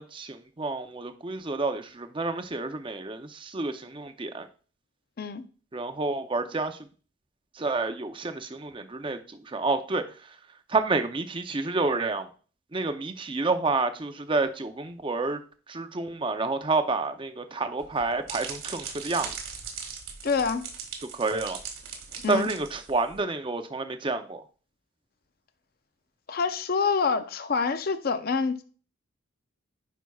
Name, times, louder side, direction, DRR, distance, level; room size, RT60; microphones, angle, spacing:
voice 1, 0.0-4.5 5.7-6.8 7.5-10.4 10.7-12.3 12.7-15.4 15.7-19.3 21.1-21.6 22.3-24.4, right 3 dB, 25° right, 0.5 m, -29 dB
sound 1, 17.8-23.2, right 6 dB, 85° right, 1.9 m, -39 dB
voice 2, 20.2-20.7 22.2-22.5 26.3-28.6, left 5 dB, 45° left, 0.5 m, -26 dB
9.3 x 5.6 x 2.3 m
head